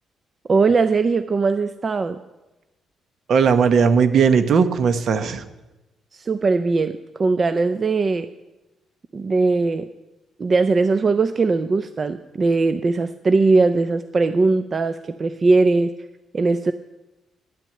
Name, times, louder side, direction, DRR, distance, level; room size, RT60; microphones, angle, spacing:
voice 1, 0.5-2.2 6.1-8.3 9.1-9.9 10.4-15.9 16.3-16.7, right 3 dB, 35° right, 10 dB, 0.5 m, -20 dB
voice 2, 3.3-5.4, right 6 dB, 60° right, 10 dB, 1.0 m, -17 dB
10.5 x 9.1 x 7.6 m, 1.0 s
cardioid pair, 90°, 0 cm